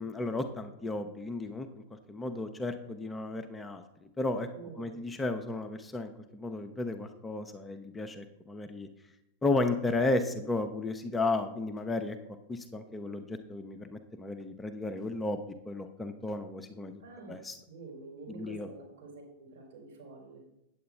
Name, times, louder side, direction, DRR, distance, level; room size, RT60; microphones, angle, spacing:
voice 1, 0.0-1.7 2.1-3.8 4.2-4.5 4.8-8.9 9.4-12.2 12.5-15.4 15.7-16.9 17.3-17.6 18.3-18.7, left 2 dB, 10° left, 7 dB, 0.6 m, -33 dB
voice 2, 4.5-5.0 17.0-20.4, right 4 dB, 60° right, 0 dB, 3.9 m, -48 dB
8.5 x 7.9 x 4.4 m, 0.87 s
figure-of-eight pair, 90°, 0 cm